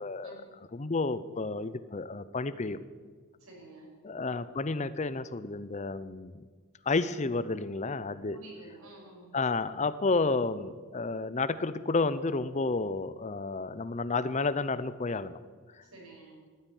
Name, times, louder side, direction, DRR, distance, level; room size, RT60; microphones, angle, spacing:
voice 1, 0.0-2.8 4.0-6.5 6.9-8.4 9.3-15.4, left 3 dB, 30° left, 14 dB, 0.6 m, -31 dB
voice 2, 3.4-3.9 8.3-9.3 15.8-16.4, right 2 dB, 80° right, -2 dB, 5.7 m, -50 dB
14.5 x 8.9 x 9.4 m, 1.5 s
head